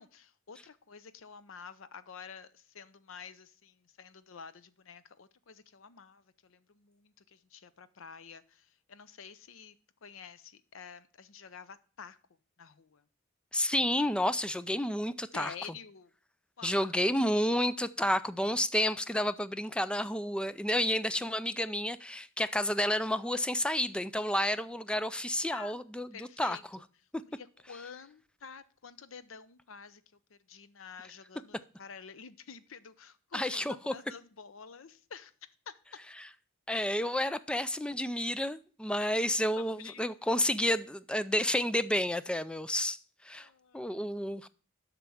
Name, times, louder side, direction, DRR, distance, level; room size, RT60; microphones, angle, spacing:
voice 1, 0.0-12.2 12.6-13.0 15.3-16.1 16.6-16.9 25.5-25.8 26.1-26.6 27.2-30.0 30.3-35.3 35.7-35.8 39.6-40.1 43.3-44.0, left 6 dB, 70° left, 0.6 m, -49 dB
voice 2, 13.5-15.5 16.6-26.6 33.3-33.9 36.7-43.0 43.2-43.5 43.7-44.5, left 1 dB, 5° left, 0.3 m, -30 dB
7.7 x 6.0 x 7.0 m
head